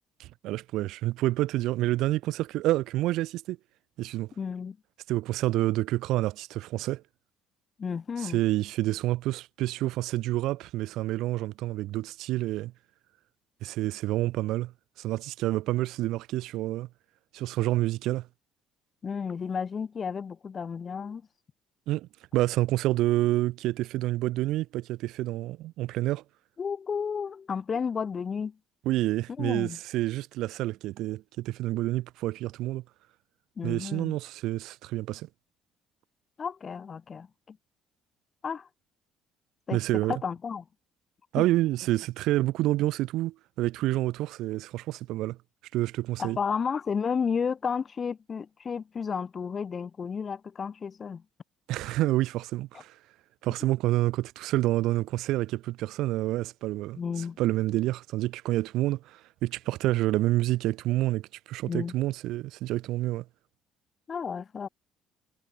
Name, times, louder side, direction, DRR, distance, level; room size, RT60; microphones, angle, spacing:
voice 1, 0.2-3.6 4.0-4.3 5.1-7.0 8.2-12.7 13.6-14.7 15.0-16.9 17.3-18.3 21.9-26.2 28.8-32.8 33.6-35.3 39.7-40.2 41.3-45.4 45.7-46.4 51.7-52.9 53.4-57.0 57.4-63.2, right 16 dB, 75° right, 1.4 m, -28 dB
voice 2, 4.4-4.8 7.8-8.4 19.0-21.2 26.6-28.6 29.4-29.8 33.6-34.1 36.4-37.6 38.4-38.7 39.7-39.8 40.1-40.6 46.2-51.2 57.0-57.4 61.7-61.9 64.1-64.7, left 6 dB, 40° left, 0.9 m, -32 dB
supercardioid pair, 85°, 0 cm